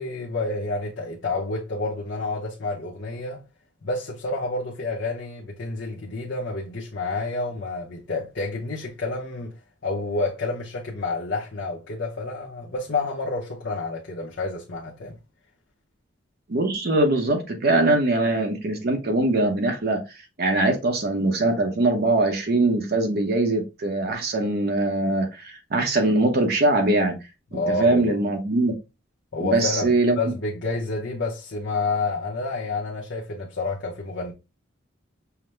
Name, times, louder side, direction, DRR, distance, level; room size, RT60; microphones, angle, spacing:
voice 1, 0.0-3.4 3.8-9.5 9.8-15.2 27.5-28.2 29.3-34.3, left 3 dB, 60° left, 0.8 m, -29 dB
voice 2, 16.5-27.2 27.5-28.7 29.4-30.2, right 2 dB, 50° right, 0.7 m, -22 dB
5.7 x 2.1 x 3.2 m
head